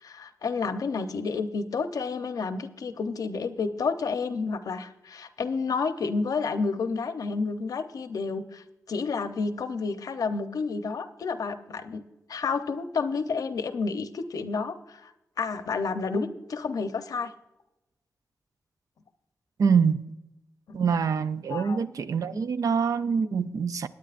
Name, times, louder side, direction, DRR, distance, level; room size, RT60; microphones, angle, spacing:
voice 1, 0.0-12.0 12.3-15.1 15.4-17.3 20.7-20.8 21.5-21.8 22.3-22.4, left 4 dB, 80° left, 0.8 m, -30 dB
voice 2, 19.6-20.0 20.7-23.9, right 6 dB, 70° right, 0.5 m, -25 dB
19.0 x 9.2 x 2.5 m
wide cardioid pair, 115°, 6 cm